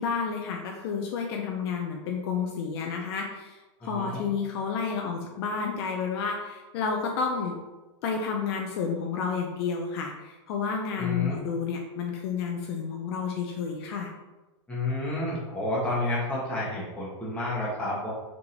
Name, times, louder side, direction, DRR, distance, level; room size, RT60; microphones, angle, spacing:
voice 1, 0.0-7.6 8.0-14.1, left 5 dB, 55° left, 1 dB, 0.6 m, -31 dB
voice 2, 3.8-4.3 11.0-11.4 14.7-18.1, left 2 dB, 10° left, -7 dB, 1.5 m, -30 dB
3.7 x 3.7 x 3.0 m, 1.1 s
hypercardioid pair, 125°, 16 cm